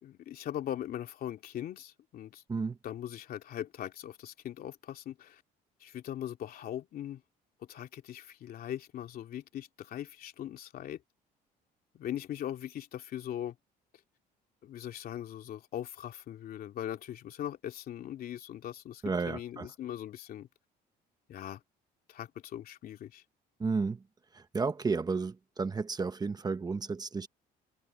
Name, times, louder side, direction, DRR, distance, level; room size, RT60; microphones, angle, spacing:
voice 1, 0.0-2.4 2.8-5.4 5.8-7.2 7.6-11.0 11.9-13.6 14.6-20.5 21.3-21.6 22.1-23.2, left 11 dB, 60° left, 2.8 m, -40 dB
voice 2, 19.0-19.7 23.6-24.0 24.3-27.3, right 4 dB, 25° right, 1.1 m, -32 dB
cardioid pair, 110°, 17 cm